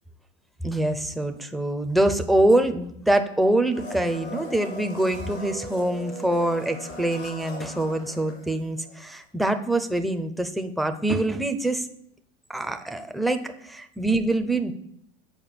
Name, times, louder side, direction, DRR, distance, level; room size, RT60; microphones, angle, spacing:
voice 1, 0.6-11.9 12.5-14.7, right 1 dB, ahead, 6 dB, 0.5 m, -24 dB
Domestic sounds home sounds, 3.7-9.0 9.2-9.3, equal, 85° left, 2.6 m, -39 dB
7.1 x 4.5 x 5.8 m, 0.72 s
supercardioid pair, 110°, 31 cm